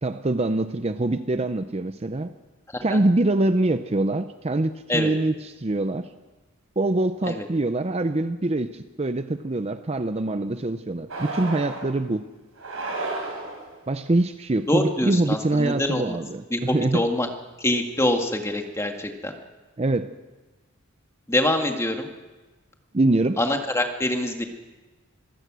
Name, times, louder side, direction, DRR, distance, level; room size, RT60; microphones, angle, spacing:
voice 1, 0.0-2.3 2.8-6.1 6.8-12.3 13.9-17.0 19.8-20.1 22.9-23.4, right 2 dB, 30° right, 10 dB, 0.6 m, -24 dB
sound 1, 11.1-11.9 12.6-13.7, right 3 dB, 70° right, 5.5 m, -32 dB
voice 2, 14.7-16.2 16.5-17.3 17.6-19.3 21.3-22.1 23.4-24.4, left 1 dB, 15° left, 4 dB, 1.8 m, -25 dB
25.5 x 16.0 x 6.2 m, 1.2 s
head